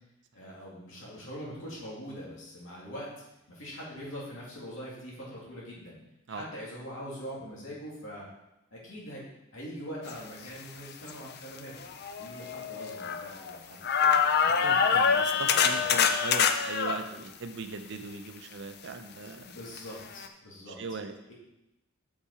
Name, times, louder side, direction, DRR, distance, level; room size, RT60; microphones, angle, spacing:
voice 1, 0.3-3.1 3.5-6.0 6.3-8.3 8.7-9.2 9.5-11.9 12.2-15.2 15.5-16.0 19.4-20.8 21.3-21.4, equal, 65° left, -5 dB, 2.9 m, -43 dB
sound 1, 11.1-11.2 11.8-13.6 13.8-17.0 19.8-19.9 20.2-20.3, left 6 dB, 50° left, 0.5 m, -25 dB
voice 2, 14.5-19.5 20.7-21.1, right 4 dB, 60° right, 8 dB, 0.6 m, -40 dB
6.8 x 5.6 x 4.9 m, 0.89 s
head